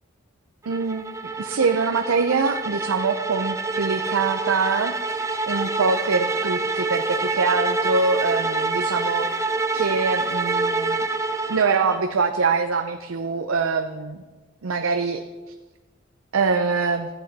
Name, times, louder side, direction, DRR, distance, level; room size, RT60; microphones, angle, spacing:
sound 1, 0.7-12.0, right 3 dB, 15° right, 0.5 m, -26 dB
voice 1, 0.7-5.2 5.5-9.3 9.7-11.1 11.5-14.2 14.6-15.2 16.3-17.1, right 4 dB, 85° right, 6 dB, 0.6 m, -24 dB
13.5 x 8.1 x 4.1 m, 1.3 s
head